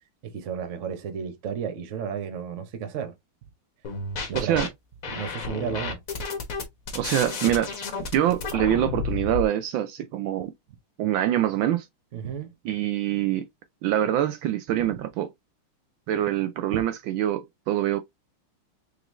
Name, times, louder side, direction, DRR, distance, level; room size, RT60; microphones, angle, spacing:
voice 1, 0.2-3.1 4.3-4.7 5.1-6.0 12.1-12.5 16.7-16.9, right 7 dB, 60° right, 0.8 m, -33 dB
sound 1, 3.8-4.7 5.0-9.4, left 4 dB, 50° left, 1.3 m, -31 dB
voice 2, 4.3-4.7 6.9-7.7 8.1-10.5 11.0-11.8 12.6-13.5 13.8-15.3 16.1-18.0, right 11 dB, 75° right, 1.2 m, -25 dB
3.9 x 3.1 x 3.0 m
omnidirectional pair, 2.4 m